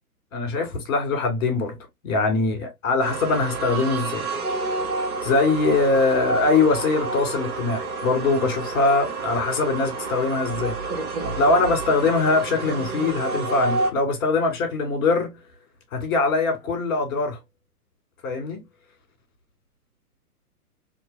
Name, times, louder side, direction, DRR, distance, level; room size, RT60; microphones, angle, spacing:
voice 1, 0.3-1.8 2.0-4.3 5.2-10.8 11.4-15.3 15.9-17.4 18.2-18.6, left 3 dB, 55° left, 2.2 m, -22 dB
sound 1, 3.0-13.9, right 3 dB, 20° right, 1.5 m, -29 dB
3.2 x 3.1 x 3.1 m
hypercardioid pair, 140°, 46 cm